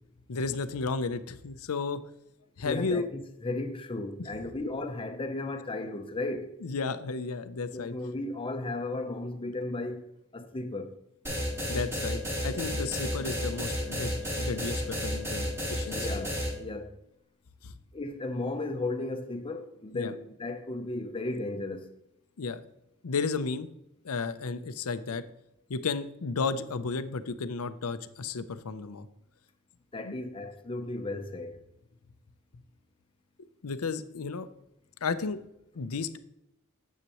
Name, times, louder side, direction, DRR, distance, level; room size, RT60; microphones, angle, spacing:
voice 1, 0.3-2.0 2.6-3.1 6.6-7.9 11.7-16.2 17.6-17.7 19.9-20.1 22.4-22.6 23.0-23.7 24.0-25.2 25.7-29.1 30.0-30.1 33.6-34.5 35.0-35.4 35.7-36.2, left 4 dB, 70° left, 0.6 m, -33 dB
voice 2, 2.6-6.5 7.7-10.9 15.9-17.0 17.9-21.9 29.9-31.6, left 2 dB, 25° left, 0.7 m, -35 dB
sound 1, 11.2-16.5, equal, 10° right, 1.8 m, -31 dB
9.7 x 7.4 x 3.0 m
head